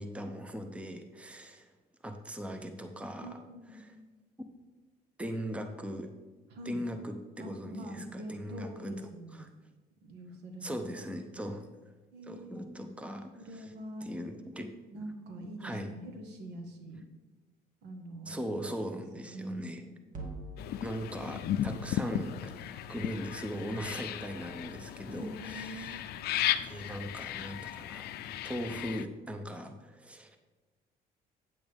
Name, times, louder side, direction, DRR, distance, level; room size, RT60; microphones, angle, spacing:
voice 1, 0.0-1.7 2.0-3.4 3.7-4.0 5.2-6.1 6.6-9.5 10.6-11.7 12.3-13.7 14.0-14.8 15.6-15.9 18.3-19.8 20.8-26.0 26.6-28.1 28.4-30.4, equal, 5° right, 6 dB, 0.8 m, -39 dB
voice 2, 3.2-3.8 6.5-6.9 7.4-9.4 10.0-11.1 11.4-11.5 12.1-12.7 13.4-14.1 14.9-17.0 17.8-18.3 19.1-19.9 25.1-26.0, right 1 dB, 80° right, 4 dB, 1.5 m, -44 dB
sound 1, 20.1-24.5, right 2 dB, 50° right, 2.0 m, -49 dB
sound 2, 20.6-29.1, left 11 dB, 70° left, 0.5 m, -36 dB
8.9 x 8.6 x 3.5 m, 1.2 s
cardioid pair, 110°, 17 cm